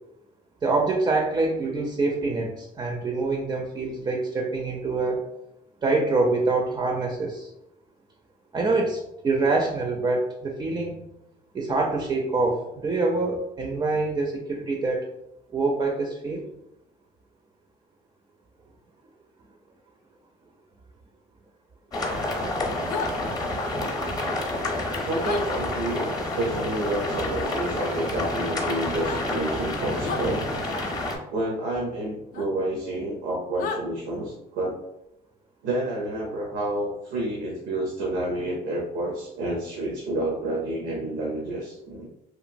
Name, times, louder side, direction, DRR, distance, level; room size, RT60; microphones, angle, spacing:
voice 1, 0.6-5.3 5.8-7.5 8.5-11.0 11.5-15.1 15.5-16.5, right 3 dB, 25° right, 2 dB, 0.4 m, -25 dB
sound 1, 21.9-31.2, left 1 dB, 25° left, 0.7 m, -29 dB
sound 2, 22.9-23.1 25.2-25.4 27.4-27.6 28.9-29.2 30.0-30.3 32.3-32.5 33.6-33.8, left 5 dB, 55° left, 0.4 m, -32 dB
voice 2, 25.0-30.4 31.3-34.8 35.6-42.1, right 1 dB, 90° right, -2 dB, 0.7 m, -29 dB
2.9 x 2.4 x 2.5 m, 0.84 s
cardioid pair, 110°, 17 cm